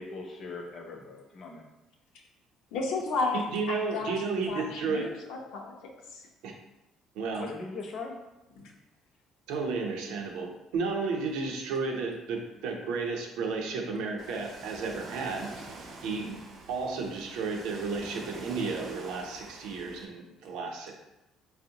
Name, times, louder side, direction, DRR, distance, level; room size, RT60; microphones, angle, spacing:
voice 1, 0.0-1.6 7.4-8.2, left 3 dB, 30° left, 2 dB, 0.5 m, -40 dB
voice 2, 2.7-4.2 4.5-5.7 6.1-6.2 8.6-8.7, left 3 dB, 85° left, 0 dB, 0.6 m, -33 dB
voice 3, 3.3-5.2 6.4-6.5 7.2-7.5 9.5-15.5 16.0-20.9, right 4 dB, 90° right, 1 dB, 0.5 m, -33 dB
Ocean, 14.2-20.1, right 3 dB, 35° right, 0.4 m, -46 dB
4.4 x 2.0 x 2.7 m, 0.98 s
cardioid pair, 175°, 0 cm